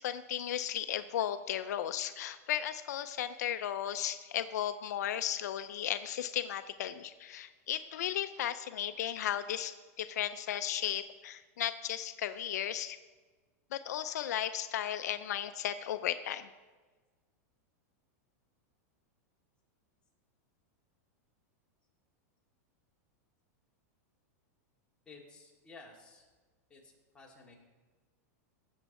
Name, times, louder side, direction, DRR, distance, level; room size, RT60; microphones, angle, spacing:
voice 1, 0.0-13.0 13.7-16.5, left 11 dB, 80° left, 11 dB, 0.5 m, -35 dB
voice 2, 25.1-26.3 26.7-27.5, left 3 dB, 10° left, -3 dB, 2.4 m, -54 dB
16.5 x 7.3 x 4.2 m, 1.3 s
supercardioid pair, 140°, 9 cm